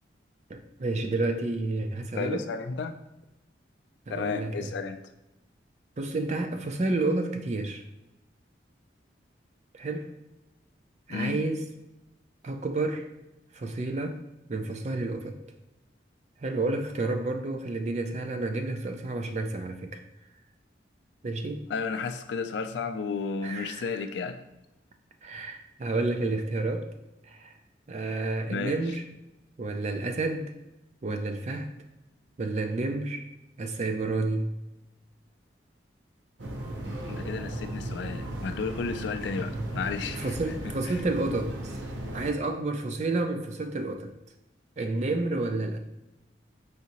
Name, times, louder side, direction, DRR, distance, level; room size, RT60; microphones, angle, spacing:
voice 1, 0.5-2.5 4.1-4.7 6.0-7.8 9.7-10.1 11.1-11.6 12.4-13.1 13.5-14.2 14.5-15.4 16.4-20.0 21.2-21.7 23.4-24.0 25.2-26.9 27.2-27.6 27.9-29.0 29.6-30.5 31.0-31.7 32.4-33.2 33.6-34.5 40.1-41.8 42.1-44.1 44.8-45.8, right 2 dB, 35° right, 5 dB, 0.4 m, -30 dB
voice 2, 2.1-3.0 4.1-5.0 11.1-11.4 21.7-24.4 28.4-28.8 37.1-40.3 40.6-41.0, left 5 dB, 70° left, 8 dB, 0.3 m, -33 dB
sound 1, 36.4-42.3, right 1 dB, 85° right, 0.7 m, -36 dB
5.0 x 2.7 x 2.9 m, 0.94 s
head